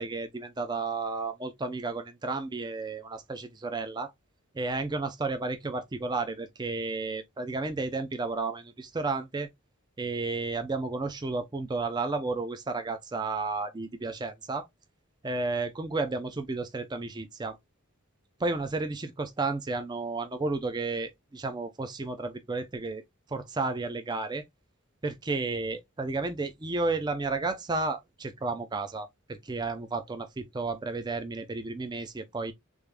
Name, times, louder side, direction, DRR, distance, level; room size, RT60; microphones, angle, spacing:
voice 1, 0.0-4.1 4.5-9.5 10.0-14.7 15.2-17.6 18.4-23.0 23.3-24.4 25.0-32.5, right 3 dB, 20° right, 0.4 m, -32 dB
3.5 x 2.5 x 3.2 m
head